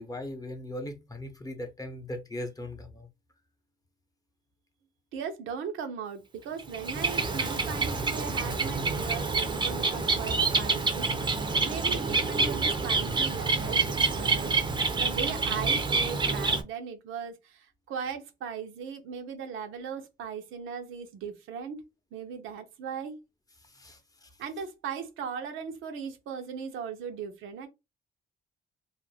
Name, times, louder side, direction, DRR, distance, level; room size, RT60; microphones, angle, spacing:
voice 1, 0.0-3.1 23.6-24.3, left 1 dB, 20° left, 0.7 m, -39 dB
voice 2, 5.1-14.6 14.9-21.8 22.1-23.2 24.4-27.7, right 6 dB, 85° right, 0.6 m, -38 dB
Bird, 6.6-16.6, right 4 dB, 25° right, 0.5 m, -27 dB
2.4 x 2.1 x 3.2 m
cardioid pair, 90°, 20 cm